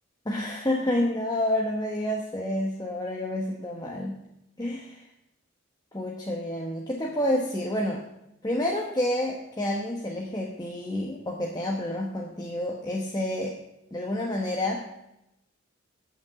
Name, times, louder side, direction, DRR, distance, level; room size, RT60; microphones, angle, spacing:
voice 1, 0.2-4.2 4.6-5.1 5.9-8.0 8.4-13.5 13.9-14.8, left 1 dB, 20° left, -1 dB, 1.1 m, -29 dB
8.7 x 7.4 x 8.2 m, 0.87 s
head